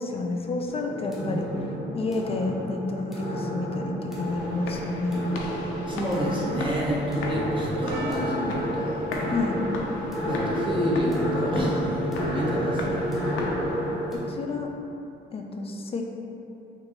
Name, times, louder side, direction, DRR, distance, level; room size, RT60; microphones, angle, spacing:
voice 1, 0.0-1.5 1.9-5.2 9.3-9.6 14.1-14.7 15.3-16.1, left 3 dB, 30° left, 2 dB, 0.4 m, -30 dB
sound 1, 0.7-14.2, equal, ahead, 1.0 m, -30 dB
voice 2, 1.2-1.6 5.9-9.0 10.3-12.0 12.3-13.1, equal, 25° right, -5 dB, 0.8 m, -29 dB
sound 2, 4.1-14.1, left 2 dB, 85° left, 0.5 m, -37 dB
Percussion, 7.9-13.1, equal, 75° right, 0.4 m, -46 dB
3.9 x 2.6 x 3.0 m, 2.9 s
cardioid pair, 90°, 20 cm